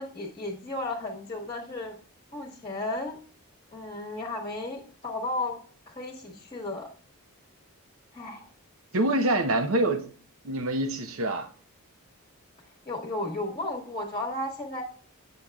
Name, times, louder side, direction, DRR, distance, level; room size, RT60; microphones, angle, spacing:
voice 1, 0.0-2.0 2.3-3.2 3.7-5.6 5.9-6.9 8.1-8.5 8.9-9.1 12.9-14.8, left 2 dB, 25° left, 1.2 m, -34 dB
voice 2, 8.9-10.1 10.4-11.5, right 1 dB, 65° right, 0.8 m, -25 dB
8.7 x 6.5 x 2.3 m
head